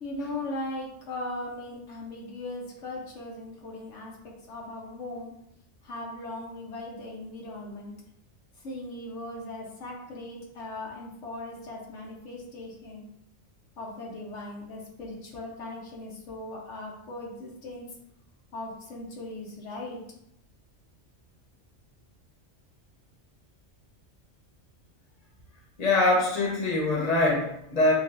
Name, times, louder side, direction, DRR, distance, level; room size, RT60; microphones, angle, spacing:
voice 1, 0.0-5.3 5.8-7.9 8.6-13.1 13.8-17.9 18.5-20.0, left 2 dB, 85° left, -3 dB, 1.3 m, -38 dB
voice 2, 25.8-28.0, left 2 dB, 35° left, -2 dB, 1.1 m, -23 dB
6.5 x 2.5 x 2.6 m, 0.76 s
omnidirectional pair, 1.2 m